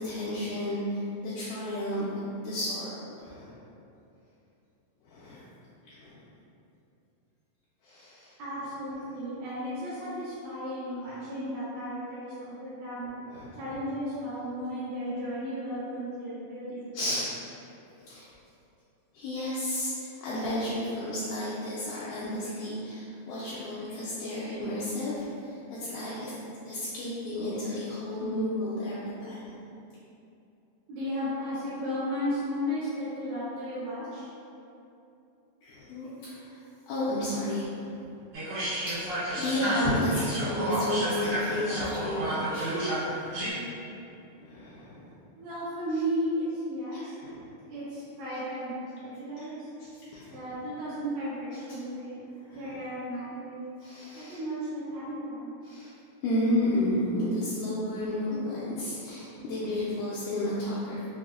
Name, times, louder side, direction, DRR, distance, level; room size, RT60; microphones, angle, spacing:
voice 1, 0.0-2.1 2.4-3.5 5.0-5.4 5.9-6.2 7.8-8.3 13.3-13.6 16.9-17.3 18.1-18.3 19.1-26.3 26.7-29.4 35.6-36.6 36.9-38.1 38.9-43.0 43.5-43.6 44.4-45.1 46.9-47.5 49.4-49.5 49.8-50.4 51.7-51.8 52.5-52.8 53.8-54.4 55.6-55.9 56.2-61.1, left 1 dB, 80° left, -9 dB, 1.9 m, -32 dB
voice 2, 8.4-13.1 13.6-17.1 30.9-34.3 45.4-47.1 47.7-49.7 50.3-52.2 52.6-53.6 54.1-55.5, equal, 85° right, -15 dB, 2.6 m, -34 dB
sound 1, 38.3-43.5, right 1 dB, 70° right, 2.1 m, -31 dB
5.7 x 2.0 x 2.4 m, 2.8 s
omnidirectional pair, 3.8 m